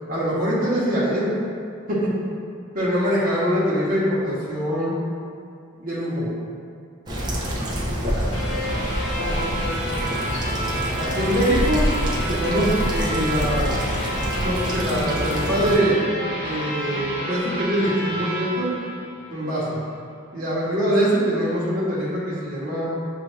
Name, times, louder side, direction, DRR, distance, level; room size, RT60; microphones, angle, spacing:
voice 1, 0.1-1.3 1.9-2.1 2.7-4.9 5.8-6.3 9.1-9.3 11.0-11.8 12.3-13.7 14.4-16.0 16.4-18.7 19.3-19.8 20.3-22.8, equal, 40° right, -10 dB, 0.9 m, -23 dB
sound 1, 7.1-15.8, equal, 20° right, 0.5 m, -26 dB
voice 2, 8.1-8.8 9.1-10.5, left 1 dB, 60° left, -9 dB, 1.3 m, -34 dB
sound 2, 8.3-19.6, right 1 dB, 25° left, 0.8 m, -30 dB
6.4 x 2.4 x 3.0 m, 2.4 s
head